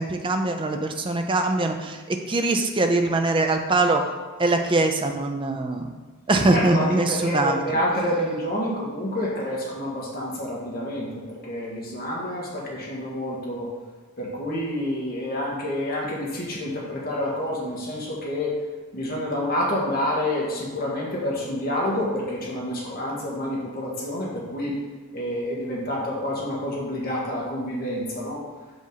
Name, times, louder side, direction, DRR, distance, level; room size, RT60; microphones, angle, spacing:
voice 1, 0.0-4.0 4.4-5.9 6.3-7.6, right 2 dB, 25° right, 5 dB, 0.5 m, -22 dB
voice 2, 6.5-13.7 14.2-18.5 18.9-24.8 25.1-28.4, left 1 dB, 45° left, -4 dB, 1.6 m, -28 dB
6.9 x 5.1 x 4.0 m, 1.4 s
head